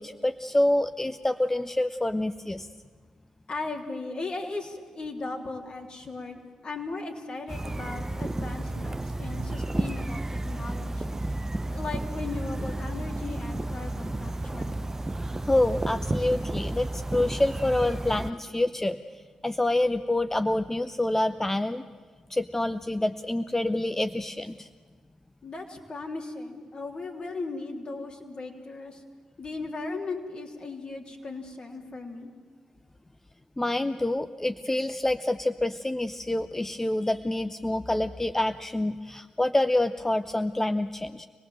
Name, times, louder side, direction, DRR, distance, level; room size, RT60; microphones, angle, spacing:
voice 1, 0.0-2.7 15.4-19.0 19.4-21.8 22.3-24.7 33.6-41.3, left 1 dB, 15° left, 9 dB, 0.8 m, -27 dB
voice 2, 3.5-11.2 11.7-14.8 25.4-29.0 29.4-32.3, left 3 dB, 50° left, 1 dB, 3.3 m, -37 dB
sound 1, 7.5-18.3, right 2 dB, 20° right, 0.8 m, -32 dB
26.0 x 18.5 x 7.8 m, 1.5 s
hypercardioid pair, 40°, 2 cm